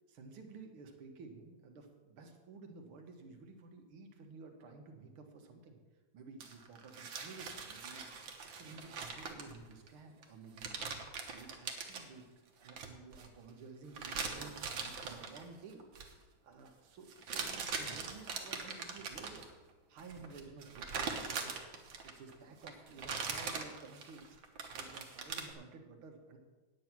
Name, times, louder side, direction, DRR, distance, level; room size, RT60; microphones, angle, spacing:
voice 1, 0.1-5.8 6.1-8.1 8.4-12.3 12.6-15.9 16.4-19.5 19.9-21.6 21.8-24.4 24.7-26.4, right 4 dB, 90° right, 4 dB, 2.2 m, -53 dB
sound 1, 6.4-9.9 10.2-10.3 10.6-12.0 12.6-13.3 13.9-15.4 15.8-16.1 17.1-19.5 20.0-22.3 22.6-25.5, right 5 dB, 70° right, 1.9 m, -42 dB
9.3 x 9.2 x 6.0 m, 1.2 s
omnidirectional pair, 2.3 m